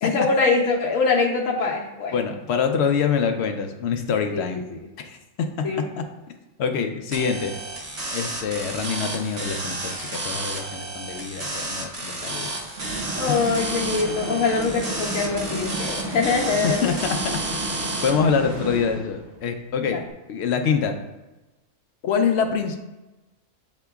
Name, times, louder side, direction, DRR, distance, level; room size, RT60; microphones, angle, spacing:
voice 1, 0.0-2.1 4.3-4.8 5.6-5.8 13.2-16.8 19.8-20.0, left 4 dB, 80° left, -1 dB, 1.2 m, -23 dB
voice 2, 2.1-4.6 5.0-5.7 6.0-6.1 6.6-7.5 8.1-12.5 13.3-13.4 16.6-17.2 18.0-20.0 20.3-21.0 22.0-22.8, left 6 dB, 65° left, 6 dB, 0.8 m, -25 dB
sound 1, 7.1-18.1, right 2 dB, 35° right, 0.7 m, -31 dB
sound 2, 12.8-19.4, right 2 dB, 60° right, 1.2 m, -33 dB
8.1 x 2.9 x 2.3 m, 1.1 s
omnidirectional pair, 1.4 m